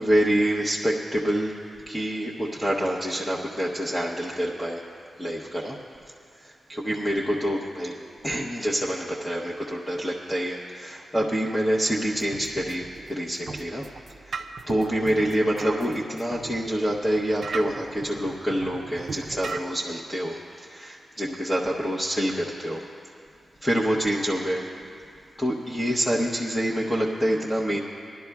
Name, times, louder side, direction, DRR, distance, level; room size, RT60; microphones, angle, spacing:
voice 1, 0.0-1.5 1.9-4.8 5.2-5.8 6.3-13.9 14.3-22.9 23.6-24.7 25.4-27.8, equal, 10° left, -4 dB, 0.8 m, -27 dB
sound 1, 12.1-19.6, right 4 dB, 55° right, 0.4 m, -38 dB
21.0 x 12.0 x 2.3 m, 2.4 s
wide cardioid pair, 145°, 0 cm